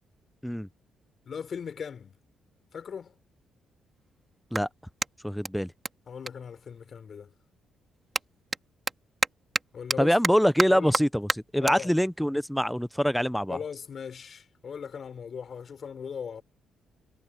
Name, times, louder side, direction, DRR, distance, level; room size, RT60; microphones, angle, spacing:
voice 1, 1.3-2.1 2.7-3.1 6.1-7.3 9.7-10.2 10.7-11.0 11.6-11.9 13.5-16.4, left 6 dB, 50° left, 3.8 m, -38 dB
Clapping, 2.4-2.5 3.2-7.2 7.5-14.2, right 3 dB, 20° right, 2.1 m, -34 dB
voice 2, 5.2-5.7 10.0-11.3 11.5-13.6, equal, ahead, 0.6 m, -24 dB
cardioid pair, 90°, 0 cm